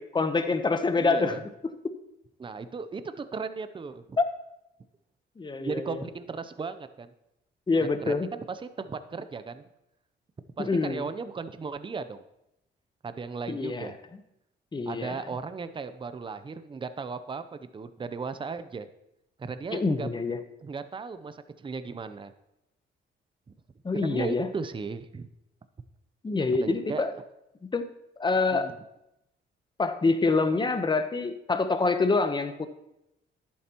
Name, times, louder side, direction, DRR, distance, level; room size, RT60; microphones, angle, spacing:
voice 1, 0.0-1.4 1.8-1.9 4.2-4.3 5.4-6.1 7.7-8.3 10.6-11.1 13.5-14.2 14.7-15.2 19.7-20.4 23.8-24.5 26.2-27.1 27.7-27.9 28.2-28.7 29.8-32.7, left 3 dB, 25° left, 9 dB, 0.9 m, -26 dB
voice 2, 1.0-1.4 2.4-4.2 5.6-7.1 8.1-9.6 10.6-12.2 13.0-13.9 14.9-18.9 19.4-20.1 20.6-22.3 23.9-25.3 26.5-27.0 28.5-28.7, right 4 dB, 25° right, 11 dB, 0.6 m, -36 dB
11.0 x 8.7 x 3.0 m, 0.85 s
cardioid pair, 90°, 20 cm